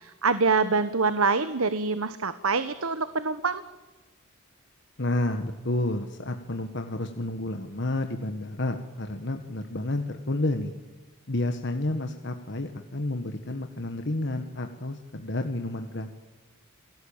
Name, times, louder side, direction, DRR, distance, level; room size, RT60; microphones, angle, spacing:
voice 1, 0.0-3.6, right 4 dB, 75° right, 12 dB, 1.1 m, -25 dB
voice 2, 5.0-10.7 11.3-16.2, left 2 dB, 55° left, 6 dB, 1.5 m, -30 dB
28.5 x 18.5 x 8.8 m, 1.2 s
head